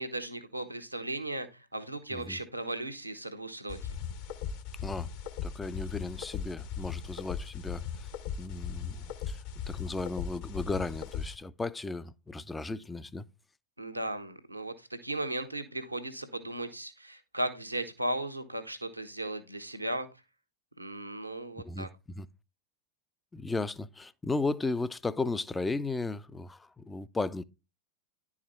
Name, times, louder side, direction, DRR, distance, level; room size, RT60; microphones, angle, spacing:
voice 1, 0.0-3.8 13.8-20.1 20.8-21.9, right 1 dB, 85° right, 1.1 m, -36 dB
sound 1, 3.7-11.4, left 7 dB, 50° left, 1.1 m, -38 dB
voice 2, 5.4-7.8 8.4-9.4 9.7-13.2 21.6-22.3 23.3-27.4, left 3 dB, 10° left, 0.5 m, -35 dB
10.5 x 4.8 x 4.3 m
figure-of-eight pair, 90°, 0 cm